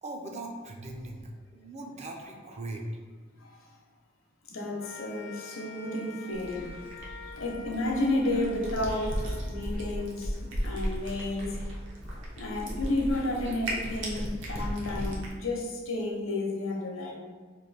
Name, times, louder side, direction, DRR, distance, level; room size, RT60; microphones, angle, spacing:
voice 1, 0.0-2.8, right 2 dB, 35° right, 1 dB, 0.5 m, -40 dB
voice 2, 4.5-6.7 7.4-10.4 10.6-11.6 12.4-17.2, left 1 dB, 85° left, 0 dB, 0.8 m, -31 dB
sound 1, 4.8-11.2, left 4 dB, 55° left, 0.4 m, -48 dB
Cat, 6.3-15.3, equal, 65° right, 0.8 m, -36 dB
3.2 x 2.6 x 4.0 m, 1.4 s
head